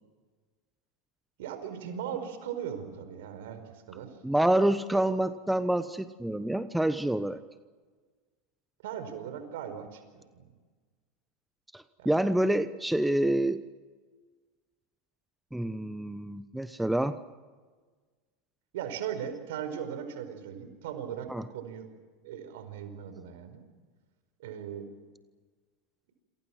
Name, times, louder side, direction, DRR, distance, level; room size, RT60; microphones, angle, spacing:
voice 1, 1.4-3.6 3.9-4.2 4.9-5.0 8.8-10.5 12.0-12.1 18.7-21.9 22.2-23.6 24.4-24.9, right 8 dB, 65° right, 9 dB, 5.0 m, -38 dB
voice 2, 4.2-7.4 11.7-13.6 15.5-17.2 21.3-21.4, right 1 dB, 5° right, 12 dB, 1.1 m, -27 dB
28.0 x 27.0 x 6.1 m, 1.4 s
hypercardioid pair, 85°, 0 cm